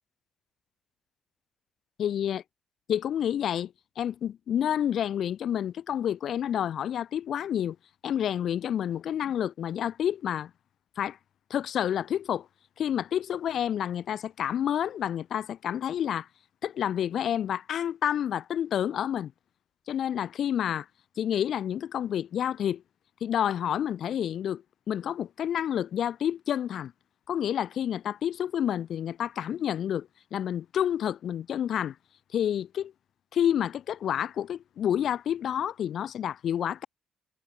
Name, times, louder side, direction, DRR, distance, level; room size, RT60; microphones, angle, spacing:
voice 1, 2.0-2.4 2.9-7.8 8.0-10.5 11.0-11.2 11.5-12.5 12.8-16.3 16.6-19.3 19.9-20.9 21.2-22.8 23.2-24.6 24.9-26.9 27.3-32.0 32.3-32.9 33.3-36.9, left 10 dB, 60° left, 6.9 m, -29 dB
cardioid pair, 110°, 0 cm